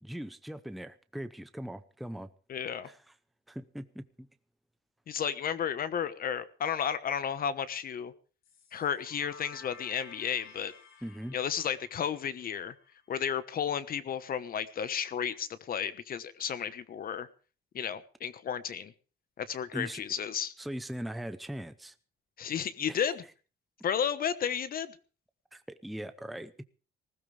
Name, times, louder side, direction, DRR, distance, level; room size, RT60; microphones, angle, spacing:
voice 1, 0.0-2.3 2.8-3.0 3.5-4.3 11.0-11.4 19.7-20.0 20.6-21.9 22.9-23.0 25.5-26.7, equal, ahead, 0.7 m, -40 dB
voice 2, 2.5-2.9 5.1-8.1 8.7-10.7 11.3-12.7 13.1-17.3 17.7-18.9 19.4-20.5 22.4-23.2 23.8-25.0, left 8 dB, 45° left, 1.2 m, -33 dB
sound 1, 8.4-13.2, left 6 dB, 70° left, 4.4 m, -53 dB
19.5 x 16.0 x 3.3 m
cardioid pair, 175°, 21 cm